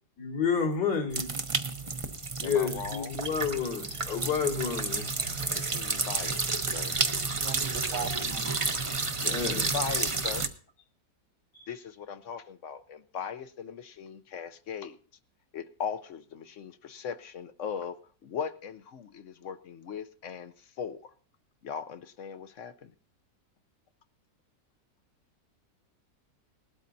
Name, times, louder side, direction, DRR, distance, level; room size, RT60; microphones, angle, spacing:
voice 1, 0.2-1.3 2.4-5.3 7.9-8.1 9.2-9.7 11.5-11.7, left 6 dB, 75° left, -1 dB, 2.9 m, -30 dB
sound 1, 1.1-10.5, right 3 dB, 30° right, 0.6 m, -31 dB
voice 2, 2.4-3.1 5.5-7.0 9.2-10.5 11.7-15.0 15.5-18.0 18.2-21.1 21.6-22.9, left 7 dB, 60° left, 13 dB, 0.8 m, -39 dB
voice 3, 7.4-8.6, right 7 dB, 70° right, 9 dB, 1.6 m, -39 dB
19.5 x 13.0 x 2.7 m, 0.43 s
omnidirectional pair, 1.9 m